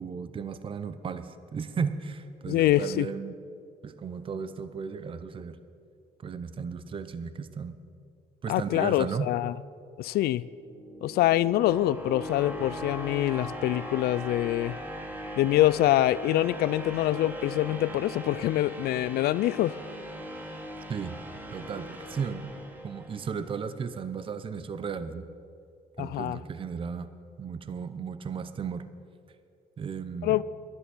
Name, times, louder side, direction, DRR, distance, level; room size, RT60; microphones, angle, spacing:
voice 1, 0.0-3.4 3.8-5.6 6.2-7.8 8.4-9.3 20.9-21.2 21.5-22.5 22.8-25.3 26.0-27.1 27.4-28.9 29.8-30.4, right 6 dB, 30° right, 12 dB, 0.6 m, -35 dB
voice 2, 2.5-3.1 8.5-9.5 10.0-10.4 11.0-14.8 15.4-19.8 26.0-26.4 30.2-30.4, left 14 dB, 70° left, 19 dB, 0.4 m, -25 dB
sound 1, 10.5-23.4, equal, 10° right, 1.7 m, -40 dB
11.5 x 11.0 x 6.1 m, 2.4 s
cardioid pair, 110°, 17 cm